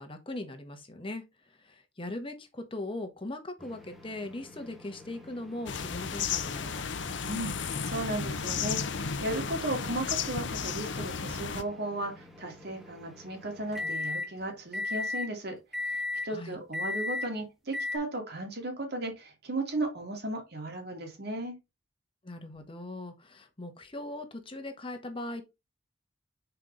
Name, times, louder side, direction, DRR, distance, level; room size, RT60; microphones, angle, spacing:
voice 1, 0.0-7.0 16.3-16.6 22.2-25.4, left 1 dB, 30° left, 1.3 m, -40 dB
sound 1, 3.6-14.3 14.7-15.3 15.7-16.3 16.7-17.3 17.7-18.0, left 3 dB, ahead, 1.4 m, -39 dB
sound 2, 5.7-11.6, left 6 dB, 70° left, 0.7 m, -33 dB
voice 2, 7.2-21.6, right 1 dB, 60° right, 2.4 m, -35 dB
6.0 x 4.6 x 4.0 m
head